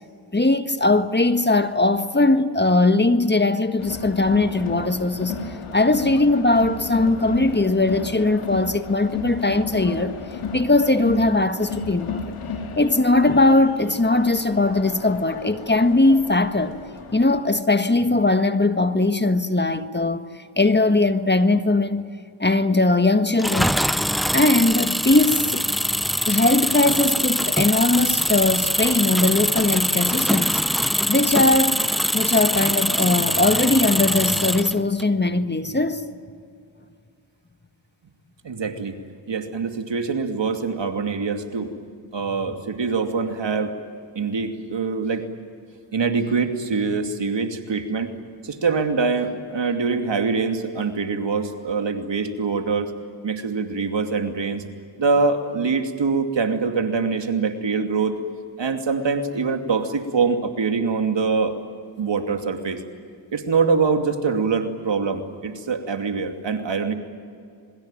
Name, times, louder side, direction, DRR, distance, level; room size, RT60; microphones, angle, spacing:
voice 1, 0.3-5.4 5.7-10.1 10.5-12.3 12.8-16.8 17.1-20.3 20.6-22.1 22.4-23.8 24.3-25.7 26.3-31.8 32.1-36.0, left 2 dB, 20° left, 1.6 m, -20 dB
Crowd, 3.8-17.4, left 4 dB, 80° left, 2.8 m, -33 dB
Engine, 23.4-35.0, equal, ahead, 0.9 m, -23 dB
voice 2, 38.4-38.9 39.3-41.7 42.1-43.7 44.1-45.2 45.9-48.1 48.4-52.9 53.2-54.6 55.0-58.2 58.6-61.6 62.0-62.8 63.3-66.9, right 4 dB, 60° right, 2.8 m, -24 dB
27.0 x 22.5 x 9.1 m
supercardioid pair, 40°, 49 cm